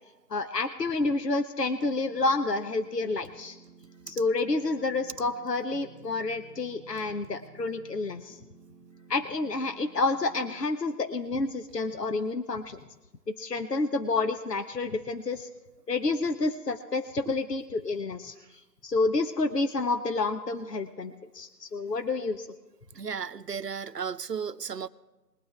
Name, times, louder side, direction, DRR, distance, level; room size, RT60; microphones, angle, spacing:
voice 1, 0.3-3.6 4.1-8.4 9.1-12.8 13.3-15.5 15.9-18.3 18.8-22.5, left 3 dB, 75° left, 8 dB, 1.1 m, -29 dB
sound 1, 1.8-10.7, right 3 dB, 45° left, 4.2 m, -54 dB
voice 2, 22.9-24.9, right 6 dB, 75° right, 13 dB, 0.8 m, -34 dB
21.5 x 8.7 x 3.5 m, 1.1 s
figure-of-eight pair, 160°, 49 cm